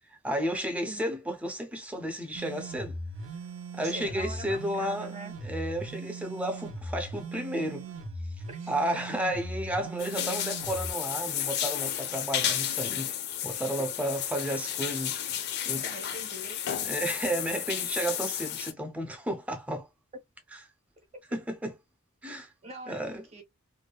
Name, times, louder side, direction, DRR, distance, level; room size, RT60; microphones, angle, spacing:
voice 1, 0.1-3.0 3.7-5.1 5.4-7.9 8.7-15.8 16.8-19.9 20.5-20.6 21.3-21.7 22.2-22.5 22.9-23.3, right 1 dB, 5° right, 0.6 m, -32 dB
sound 1, 2.4-10.9, right 2 dB, 60° right, 0.6 m, -39 dB
voice 2, 3.8-5.3 8.5-9.2 13.8-13.9 15.8-16.6 22.6-23.0 23.3-23.4, right 1 dB, 30° right, 0.9 m, -43 dB
sound 2, 10.0-18.7, left 10 dB, 50° left, 0.4 m, -32 dB
2.7 x 2.0 x 2.2 m
head